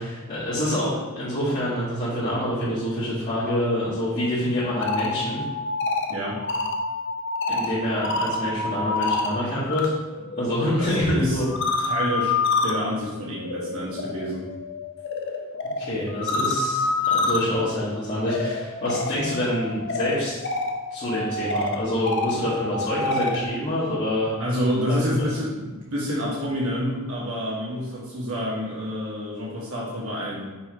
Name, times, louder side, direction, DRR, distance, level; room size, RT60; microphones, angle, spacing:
voice 1, 0.0-5.4 7.5-9.9 10.4-11.5 15.8-20.4 20.9-24.3 24.9-25.3, left 1 dB, 35° left, -13 dB, 1.8 m, -26 dB
sound 1, 4.6-9.9 10.2-23.5, left 3 dB, 55° left, 0.7 m, -28 dB
voice 2, 6.1-6.4 10.8-11.4 11.8-12.4 12.6-14.4 24.4-30.4, equal, 80° right, -5 dB, 1.3 m, -28 dB
5.8 x 3.8 x 4.7 m, 1.2 s
head